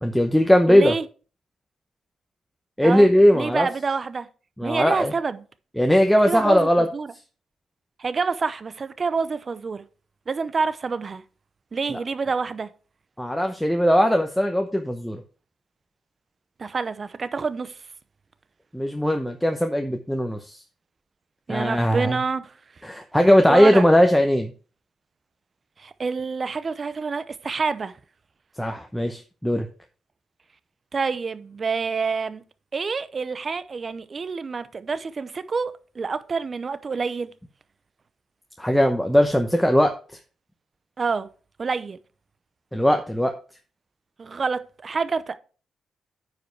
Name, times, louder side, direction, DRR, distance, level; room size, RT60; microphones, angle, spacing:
voice 1, 0.0-0.9 2.8-3.7 4.6-5.1 5.8-6.9 13.2-15.2 18.7-20.6 21.5-22.2 22.8-24.5 28.6-29.7 38.6-39.9 42.7-43.3, equal, 5° left, 0.8 m, -19 dB
voice 2, 0.7-1.0 2.8-3.1 3.3-4.3 4.6-5.4 6.2-7.1 8.0-9.8 10.3-11.2 11.7-12.7 16.6-17.7 21.5-22.5 23.5-23.8 25.8-27.9 30.9-32.4 32.7-37.3 41.0-41.3 41.6-42.0 44.2-45.4, right 4 dB, 35° right, 0.6 m, -27 dB
9.3 x 5.2 x 4.6 m
cardioid pair, 115°, 0 cm